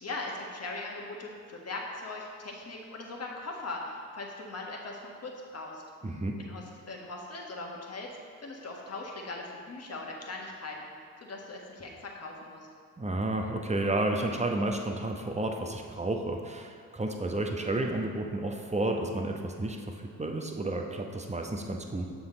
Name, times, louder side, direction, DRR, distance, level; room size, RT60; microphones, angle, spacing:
voice 1, 0.0-5.8 6.4-8.1 8.4-10.9 11.2-12.7, left 2 dB, 35° left, 0 dB, 1.5 m, -40 dB
voice 2, 6.0-6.4 13.0-22.0, right 2 dB, 15° right, 2 dB, 0.9 m, -31 dB
7.2 x 6.1 x 3.8 m, 2.1 s
hypercardioid pair, 45°, 44 cm